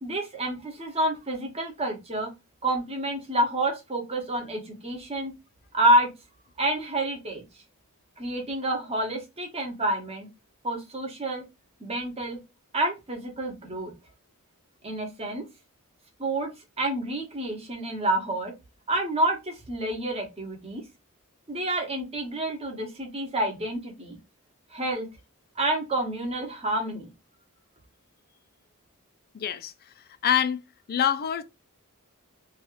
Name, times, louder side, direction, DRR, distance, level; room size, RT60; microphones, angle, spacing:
voice 1, 0.0-2.3 2.6-5.3 5.7-6.1 6.6-7.4 8.2-10.3 10.6-11.4 11.8-12.4 12.7-13.9 14.8-15.4 16.2-16.5 16.8-18.5 18.9-20.8 21.5-24.2 24.7-25.1 25.6-27.1, right 1 dB, 30° right, 0.9 m, -28 dB
voice 2, 29.3-29.7 30.2-30.6 30.9-31.4, left 9 dB, 45° left, 0.4 m, -25 dB
3.0 x 2.3 x 3.0 m
head